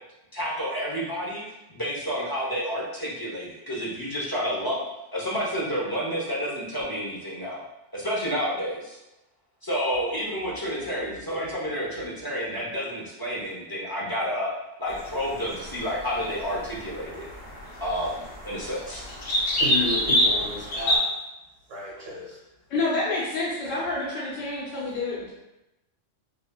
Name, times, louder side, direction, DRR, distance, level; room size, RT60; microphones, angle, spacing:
voice 1, 0.3-1.4 1.7-4.8 5.1-7.6 7.9-9.0 9.6-14.5 14.8-17.2 17.8-19.0, equal, 25° left, -6 dB, 0.6 m, -30 dB
sound 1, 14.9-21.0, equal, 65° left, 1.0 m, -27 dB
voice 2, 19.6-21.1 21.7-22.4, left 2 dB, 80° right, -5 dB, 1.4 m, -32 dB
voice 3, 22.7-25.3, left 2 dB, 90° left, -6 dB, 1.1 m, -28 dB
5.2 x 2.5 x 2.2 m, 0.92 s
omnidirectional pair, 1.3 m